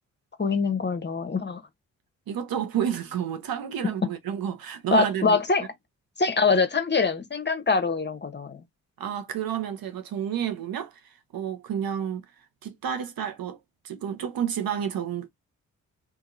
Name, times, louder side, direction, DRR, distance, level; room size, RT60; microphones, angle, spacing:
voice 1, 0.4-1.6 4.9-5.6 6.2-8.6, left 4 dB, 30° left, 0.9 m, -24 dB
voice 2, 2.3-5.4 9.0-12.2 12.6-13.6 13.8-15.3, right 9 dB, 70° right, 0.9 m, -30 dB
2.8 x 2.6 x 2.5 m
supercardioid pair, 50°, 37 cm